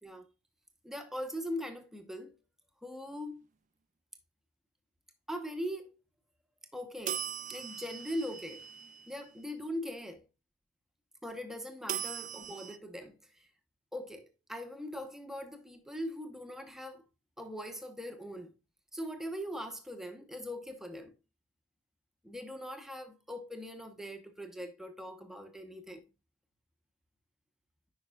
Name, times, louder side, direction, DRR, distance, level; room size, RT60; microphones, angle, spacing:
voice 1, 0.8-2.3 2.8-3.4 5.3-5.9 6.7-7.2 7.5-8.6 9.1-10.2 11.2-13.5 13.9-17.0 17.4-18.5 18.9-21.1 22.2-26.0, equal, ahead, 0.9 m, -41 dB
sound 1, 7.1-9.3 11.9-12.8, right 9 dB, 35° right, 0.4 m, -39 dB
9.3 x 5.5 x 2.3 m
head